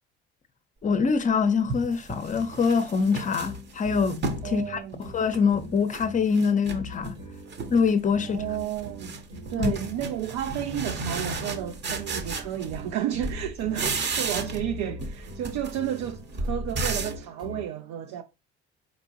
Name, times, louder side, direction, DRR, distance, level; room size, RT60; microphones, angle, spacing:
voice 1, 0.8-7.2 7.7-8.4 9.6-9.7, left 5 dB, 25° left, 0.6 m, -24 dB
sound 1, 1.0-1.1 1.7-4.5 4.9-6.0 6.3-7.2 7.5-7.9 8.2-13.0 13.2-14.7 15.0-17.2, right 3 dB, 35° right, 0.8 m, -33 dB
sound 2, 3.4-17.6, left 2 dB, 85° right, 1.7 m, -43 dB
voice 2, 4.4-5.0 8.2-9.1 9.5-18.2, right 11 dB, 60° right, 0.5 m, -32 dB
4.3 x 2.9 x 2.7 m
hypercardioid pair, 60°, 31 cm